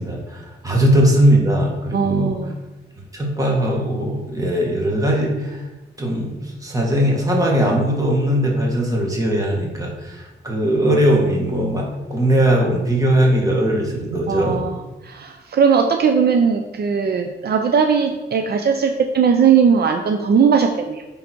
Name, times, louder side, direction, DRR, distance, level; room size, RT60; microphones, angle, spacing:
voice 1, 0.0-2.3 3.1-5.6 6.0-14.6, right 1 dB, 15° right, -2 dB, 1.8 m, -19 dB
voice 2, 1.9-2.5 14.3-14.8 15.0-21.0, right 6 dB, 55° right, 4 dB, 0.6 m, -18 dB
8.7 x 3.9 x 4.5 m, 1.1 s
wide cardioid pair, 120°, 19 cm